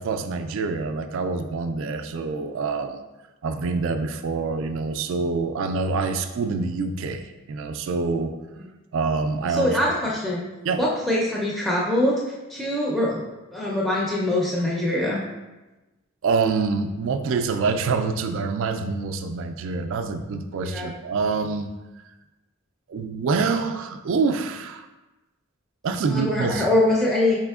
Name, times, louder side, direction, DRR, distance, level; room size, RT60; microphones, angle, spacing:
voice 1, 0.0-3.0 3.4-8.4 8.9-9.8 10.6-10.8 16.2-21.7 22.9-24.9 25.8-26.7, right 4 dB, 60° right, 7 dB, 0.3 m, -26 dB
voice 2, 9.5-10.5 10.8-13.2 13.5-15.2 20.6-20.9 26.1-27.4, left 1 dB, ahead, -5 dB, 0.5 m, -23 dB
4.8 x 4.3 x 2.3 m, 1.1 s
head